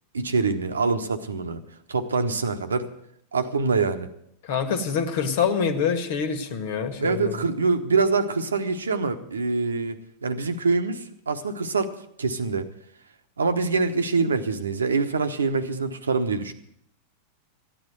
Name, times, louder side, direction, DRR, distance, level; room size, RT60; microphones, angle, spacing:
voice 1, 0.1-1.6 1.9-2.9 3.3-4.1 7.0-11.9 12.2-12.7 13.4-16.5, right 4 dB, 70° right, 9 dB, 1.1 m, -25 dB
voice 2, 4.4-7.5, left 6 dB, 55° left, 9 dB, 1.7 m, -26 dB
14.5 x 10.0 x 7.8 m, 0.70 s
figure-of-eight pair, 90°, 0 cm